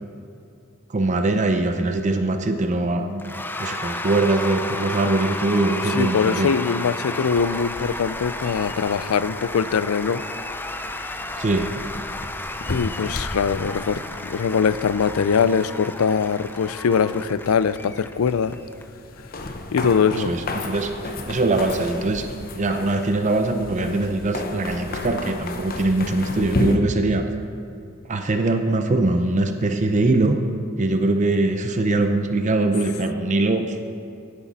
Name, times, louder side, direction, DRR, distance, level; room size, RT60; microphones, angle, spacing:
voice 1, 0.9-6.5 11.4-11.7 20.1-22.3 22.6-27.3 28.1-30.4 30.8-33.8, right 2 dB, 35° right, 6 dB, 0.6 m, -22 dB
Cheering / Applause / Crowd, 3.2-18.8, left 2 dB, 10° left, 0.4 m, -33 dB
voice 2, 5.9-10.2 12.7-14.0 14.3-18.6 19.7-20.3, left 6 dB, 90° left, 16 dB, 0.4 m, -22 dB
sound 1, 7.4-26.8, left 2 dB, 45° left, 0.9 m, -34 dB
16.0 x 9.9 x 4.1 m, 2.5 s
head